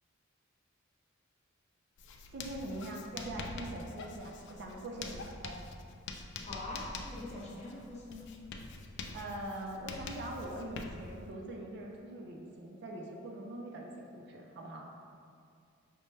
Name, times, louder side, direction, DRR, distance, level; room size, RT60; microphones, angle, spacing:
Writing, 2.0-11.3, left 3 dB, 60° left, 0.3 m, -45 dB
voice 1, 2.3-5.6 9.1-14.9, right 1 dB, 55° right, 0 dB, 0.5 m, -43 dB
voice 2, 6.4-8.3, left 2 dB, 35° left, -5 dB, 0.7 m, -43 dB
5.3 x 2.2 x 3.2 m, 2.3 s
head